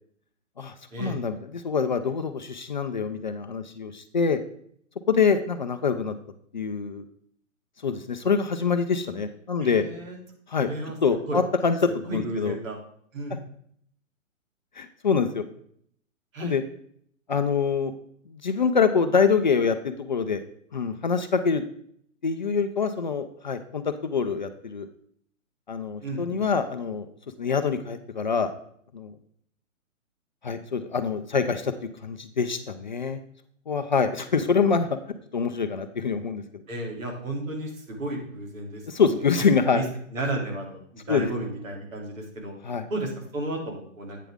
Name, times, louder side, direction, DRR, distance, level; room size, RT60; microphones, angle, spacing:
voice 1, 0.6-4.4 5.1-6.1 6.5-7.0 7.8-9.8 10.5-10.7 11.0-11.8 12.1-12.6 14.8-15.5 16.4-16.6 17.3-17.9 18.3-20.4 20.7-21.6 22.2-24.9 25.7-27.1 27.4-28.5 28.9-29.1 30.4-31.7 32.0-33.2 33.7-35.0 35.3-36.6 38.9-39.8 41.1-41.3 42.6-42.9, left 5 dB, 35° left, 8 dB, 0.4 m, -25 dB
voice 2, 9.6-10.2 10.6-11.0 11.3-11.4 12.0-12.8 13.1-13.4 16.3-16.5 26.0-26.4 36.7-38.8 39.2-39.3 39.7-39.8 40.1-42.5 42.9-44.2, right 2 dB, 80° right, 1 dB, 3.0 m, -33 dB
8.4 x 6.8 x 3.5 m, 0.64 s
hypercardioid pair, 160°, 40 cm